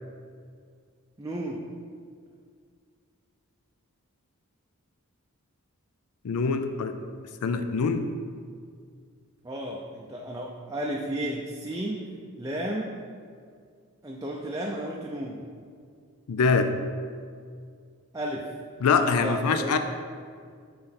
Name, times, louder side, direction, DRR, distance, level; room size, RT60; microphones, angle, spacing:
voice 1, 1.2-1.6 9.4-12.0 12.4-12.9 14.0-15.4 18.1-18.5 18.9-19.8, right 1 dB, 15° right, -2 dB, 0.4 m, -33 dB
voice 2, 6.2-7.0 7.4-8.1 16.3-16.7 18.8-19.8, left 5 dB, 85° left, 8 dB, 0.4 m, -24 dB
6.0 x 3.8 x 5.7 m, 2.1 s
head